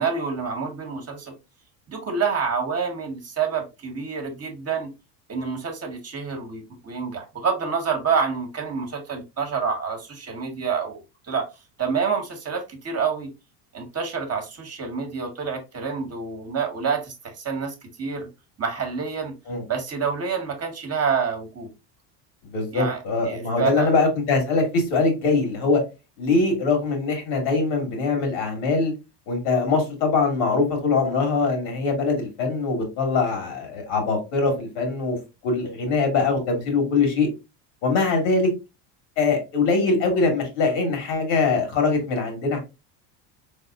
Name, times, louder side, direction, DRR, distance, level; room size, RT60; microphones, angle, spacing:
voice 1, 0.0-1.3 1.9-4.9 5.3-11.0 11.3-11.5 11.8-13.3 13.7-18.3 18.6-19.3 19.7-21.7 22.7-23.0 23.2-23.9, right 5 dB, 30° right, 1.1 m, -27 dB
voice 2, 22.4-25.8 26.2-28.9 29.3-35.2 35.4-37.3 37.8-38.5 39.2-42.6, left 4 dB, 75° left, 2.1 m, -22 dB
4.0 x 3.5 x 2.3 m
supercardioid pair, 95°, 48 cm